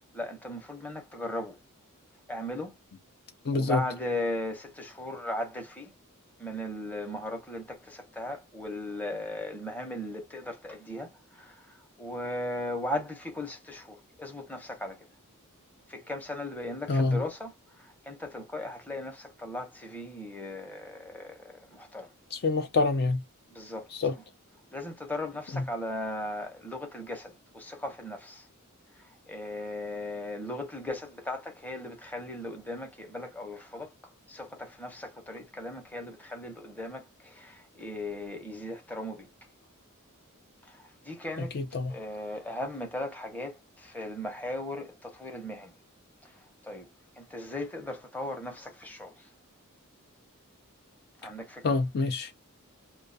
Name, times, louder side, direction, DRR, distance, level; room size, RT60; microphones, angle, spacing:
voice 1, 0.1-1.6 2.3-2.7 3.5-5.9 6.4-15.1 15.9-22.1 23.5-24.2 24.7-28.5 28.9-39.3 40.6-45.7 46.2-46.9 47.2-49.3 51.2-51.8, left 1 dB, 10° left, 0.7 m, -37 dB
voice 2, 3.5-3.8 16.9-17.2 22.3-23.2 24.0-24.1 41.5-41.9 51.6-52.3, left 3 dB, 50° left, 0.4 m, -26 dB
2.3 x 2.2 x 2.6 m
head